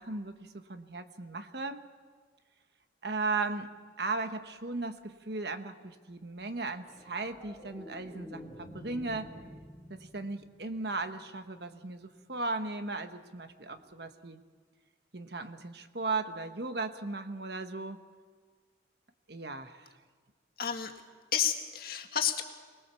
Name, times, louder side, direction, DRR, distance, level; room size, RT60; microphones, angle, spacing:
voice 1, 0.0-1.8 3.0-3.7 4.0-9.3 9.9-14.4 15.1-18.0 19.3-19.9, right 3 dB, 60° right, 8 dB, 1.3 m, -36 dB
sound 1, 6.8-11.3 13.7-13.9, equal, ahead, 3.1 m, -49 dB
voice 2, 20.6-20.9 21.3-22.4, left 8 dB, 50° left, 4 dB, 1.9 m, -30 dB
25.0 x 20.5 x 7.1 m, 1.5 s
head